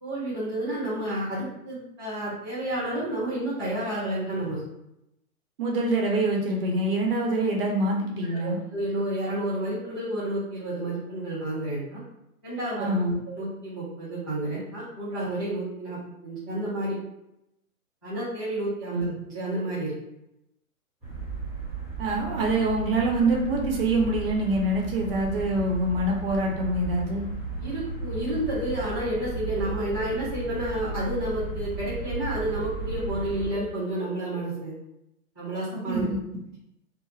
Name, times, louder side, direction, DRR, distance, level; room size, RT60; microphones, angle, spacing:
voice 1, 0.0-4.6 8.4-12.0 12.4-12.9 13.4-17.0 18.0-20.0 27.6-34.8 35.4-36.1, right 1 dB, 15° left, -12 dB, 0.3 m, -30 dB
voice 2, 5.6-8.6 12.8-13.2 18.9-19.1 22.0-27.2 35.9-36.0, right 2 dB, 40° right, 0 dB, 0.7 m, -25 dB
sound 1, 21.0-33.5, right 3 dB, ahead, 0.8 m, -34 dB
2.8 x 2.0 x 3.1 m, 0.84 s
hypercardioid pair, 145°, 44 cm